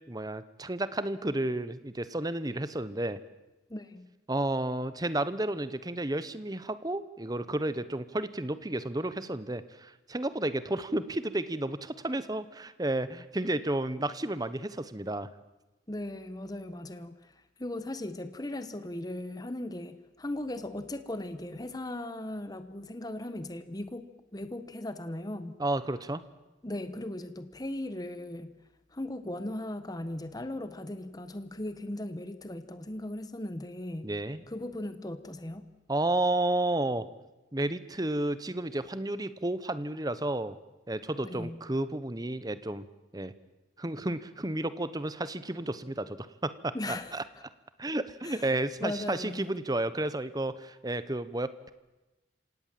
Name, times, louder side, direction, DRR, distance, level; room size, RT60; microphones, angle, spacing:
voice 1, 0.1-3.2 4.3-15.3 25.6-26.2 34.0-34.4 35.9-37.1 37.5-40.6 40.9-42.8 43.1-43.3 43.8-47.2 47.8-51.7, right 1 dB, 20° right, 14 dB, 1.0 m, -32 dB
voice 2, 3.7-4.1 15.9-17.3 17.6-25.5 26.6-28.5 28.9-34.1 34.5-35.6 41.2-41.6 46.7-47.4 48.2-48.5 48.8-49.5, left 1 dB, 20° left, 11 dB, 1.1 m, -38 dB
27.0 x 17.5 x 7.6 m, 1.1 s
head